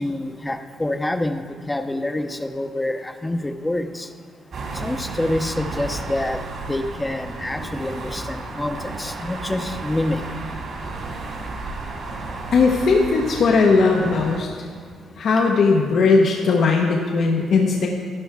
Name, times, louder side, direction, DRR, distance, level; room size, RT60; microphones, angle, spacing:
voice 1, 0.0-4.1 4.7-10.3 15.0-15.1, left 1 dB, 15° left, 7 dB, 0.8 m, -27 dB
sound 1, 4.5-14.4, right 3 dB, 60° right, 2.4 m, -33 dB
voice 2, 12.5-14.5 15.2-17.9, left 4 dB, 65° left, 0 dB, 1.1 m, -18 dB
12.5 x 11.0 x 3.6 m, 2.1 s
cardioid pair, 90°, 0 cm